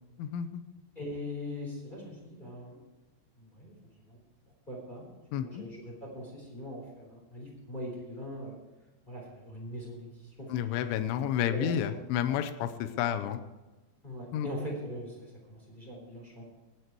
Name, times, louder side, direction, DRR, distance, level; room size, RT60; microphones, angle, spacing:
voice 1, 0.2-0.6 5.3-5.7 10.5-13.4 14.3-14.5, left 10 dB, 90° left, 9 dB, 3.2 m, -31 dB
voice 2, 0.9-2.8 3.4-3.8 4.0-4.2 4.7-5.1 5.3-8.6 9.1-10.8 11.3-11.7 14.0-16.4, equal, 10° left, -3 dB, 3.1 m, -41 dB
18.0 x 8.2 x 4.5 m, 1.1 s
omnidirectional pair, 5.3 m